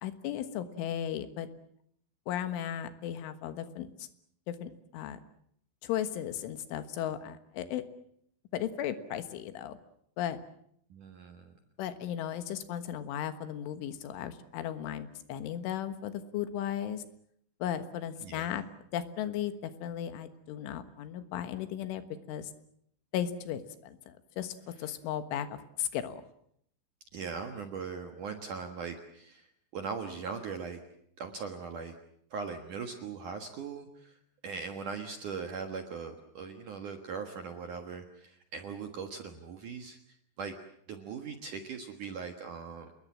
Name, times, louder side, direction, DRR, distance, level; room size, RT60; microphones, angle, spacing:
voice 1, 0.0-1.5 2.3-4.1 4.5-5.2 5.8-7.8 8.5-9.8 10.2-10.4 11.8-17.1 17.6-18.6 18.9-22.5 23.1-26.2, left 10 dB, 80° left, 10 dB, 3.9 m, -36 dB
voice 2, 10.9-11.5 18.2-18.6 24.8-24.9 27.1-29.5 29.7-30.8 31.2-31.9 32.3-34.2 34.4-40.0 40.4-40.5 40.9-42.9, right 5 dB, 60° right, 5 dB, 2.2 m, -40 dB
28.5 x 21.0 x 7.4 m, 0.69 s
omnidirectional pair, 5.6 m